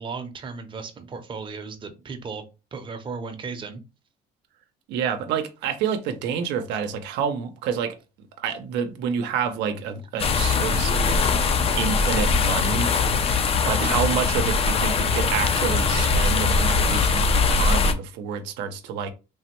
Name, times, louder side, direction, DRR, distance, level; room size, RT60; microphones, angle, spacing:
voice 1, 0.0-2.4 2.7-3.8 13.8-13.9, right 5 dB, 30° right, 0.6 m, -35 dB
voice 2, 4.9-8.0 8.4-11.2 11.8-12.9 13.6-19.1, right 7 dB, 85° right, 0.5 m, -28 dB
sound 1, 10.2-17.9, left 4 dB, 35° left, 0.4 m, -21 dB
3.3 x 2.1 x 2.9 m
cardioid pair, 110°, 17 cm